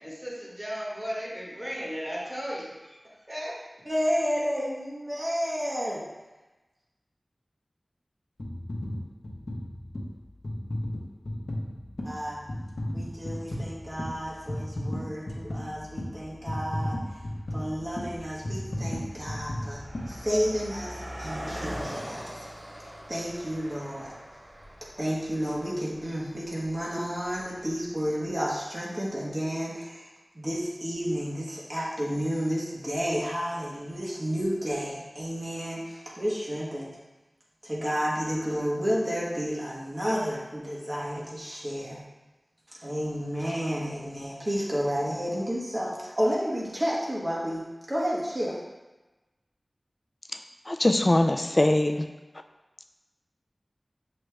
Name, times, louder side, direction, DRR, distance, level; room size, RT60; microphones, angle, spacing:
voice 1, 0.0-3.0 3.3-3.6, equal, 20° right, -6 dB, 1.4 m, -35 dB
voice 2, 3.8-6.0 12.0-12.5 12.9-17.0 17.5-22.5 23.1-24.1 25.0-30.1 30.3-37.0 37.6-42.0 42.8-48.6, equal, 35° right, -6 dB, 1.2 m, -31 dB
sound 1, 8.4-20.8 21.4-21.5, left 1 dB, 75° left, 0.7 m, -35 dB
Car passing by, 16.5-16.6 17.3-17.6 17.9-28.3, equal, 55° right, 0.9 m, -42 dB
voice 3, 50.7-52.1, left 1 dB, 35° left, 6 dB, 0.3 m, -22 dB
6.4 x 2.4 x 3.2 m, 1.1 s
wide cardioid pair, 65°, 0 cm